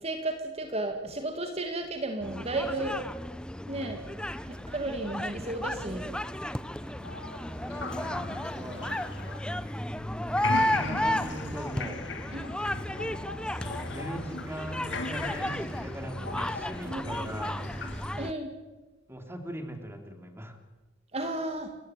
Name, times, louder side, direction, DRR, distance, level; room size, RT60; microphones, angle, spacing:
voice 1, 0.0-3.0 3.7-4.0 4.5-6.1 12.3-12.5 16.8-17.3 18.2-18.5 21.1-21.7, right 2 dB, 35° right, 5 dB, 2.2 m, -33 dB
sound 1, 2.2-18.3, left 1 dB, 5° left, 0.7 m, -33 dB
voice 2, 6.7-8.9 9.8-12.0 13.8-17.7 19.1-20.6, right 1 dB, 15° right, 6 dB, 2.8 m, -41 dB
sound 2, 7.0-10.0 10.3-18.1, left 3 dB, 70° left, 2.4 m, -38 dB
30.0 x 15.5 x 9.1 m, 1.2 s
head